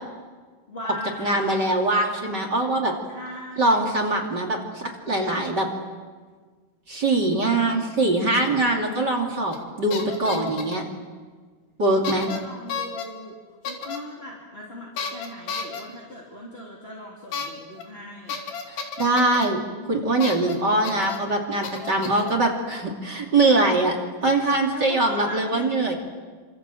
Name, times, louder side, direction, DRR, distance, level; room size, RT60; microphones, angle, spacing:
voice 1, 0.7-1.5 3.1-3.7 12.0-13.3 13.6-18.4 24.7-25.7, left 1 dB, 15° left, -2 dB, 2.8 m, -39 dB
voice 2, 1.2-2.9 3.6-5.7 6.9-10.8 11.8-12.3 18.7-19.6 19.9-24.0 24.2-25.9, right 2 dB, 30° right, 3 dB, 2.7 m, -22 dB
sound 1, 9.5-9.7 9.9-10.8 12.0-12.4 12.7-13.1 13.7-14.0 15.0-15.8 17.3-17.5 17.8-17.9 18.3-19.5 20.2-20.6 20.8-21.2 21.6-22.3, left 6 dB, 75° left, 4.6 m, -32 dB
29.0 x 26.0 x 7.8 m, 1.5 s
omnidirectional pair, 4.8 m